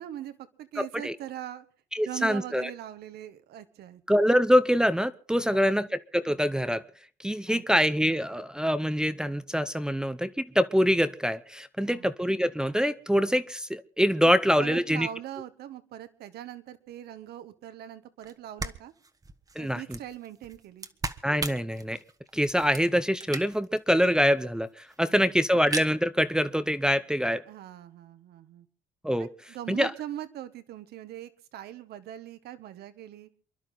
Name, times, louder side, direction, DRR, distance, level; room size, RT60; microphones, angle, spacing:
voice 1, 0.0-1.7 2.0-4.0 5.4-5.8 7.5-7.9 11.8-12.1 14.2-14.3 14.6-18.9 19.6-20.9 25.0-25.5 27.4-28.7 29.2-33.3, right 12 dB, 70° right, 11 dB, 1.5 m, -41 dB
voice 2, 0.8-1.1 1.9-2.7 4.1-6.8 7.2-15.1 19.6-19.8 21.2-22.0 22.3-27.4 29.0-29.3 29.7-29.9, equal, 5° right, 11 dB, 0.7 m, -25 dB
sound 1, 18.2-18.3 18.6-23.8 24.2-24.3 24.4-24.5 24.7-25.1 25.5-25.9, right 3 dB, 20° right, 1.2 m, -38 dB
28.5 x 11.5 x 3.9 m, 0.42 s
cardioid pair, 110°, 17 cm